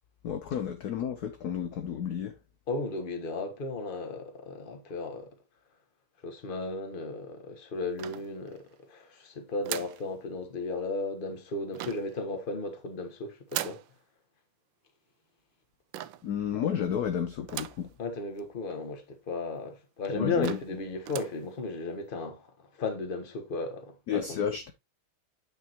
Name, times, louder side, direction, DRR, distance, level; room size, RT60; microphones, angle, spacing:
voice 1, 0.2-2.4 16.2-17.9 20.1-20.6 24.1-24.7, left 8 dB, 65° left, 1.0 m, -31 dB
voice 2, 2.7-5.3 6.2-13.8 18.0-22.5 22.8-24.4, left 3 dB, 30° left, 1.2 m, -35 dB
sound 1, 8.0-8.7 9.6-10.1 11.7-12.2 13.5-13.9 15.9-16.3 17.5-17.9 18.4-18.5 18.7-18.8 19.5-19.6 20.1-20.2 20.4-20.8 21.0-21.4, right 13 dB, 75° right, 1.2 m, -38 dB
8.7 x 5.4 x 2.9 m
omnidirectional pair, 2.4 m